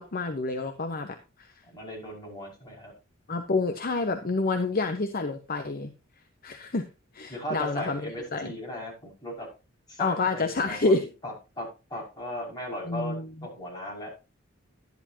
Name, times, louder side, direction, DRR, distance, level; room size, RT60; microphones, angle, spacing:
voice 1, 0.0-1.5 3.3-5.9 6.4-6.8 7.1-8.5 10.0-11.1 12.9-13.3, left 3 dB, 45° left, 7 dB, 0.9 m, -28 dB
voice 2, 1.7-2.9 7.3-9.5 9.9-10.9 11.2-13.2 13.4-14.1, equal, 20° left, -3 dB, 5.9 m, -37 dB
11.5 x 10.5 x 2.8 m, 0.29 s
head